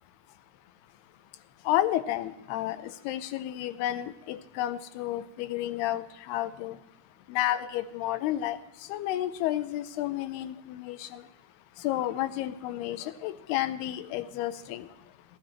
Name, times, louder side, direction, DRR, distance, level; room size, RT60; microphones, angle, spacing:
voice 1, 1.7-6.8 7.3-8.6 8.9-11.2 11.8-14.9, left 13 dB, 90° left, 12 dB, 2.8 m, -31 dB
19.5 x 13.5 x 3.1 m, 0.85 s
omnidirectional pair, 4.5 m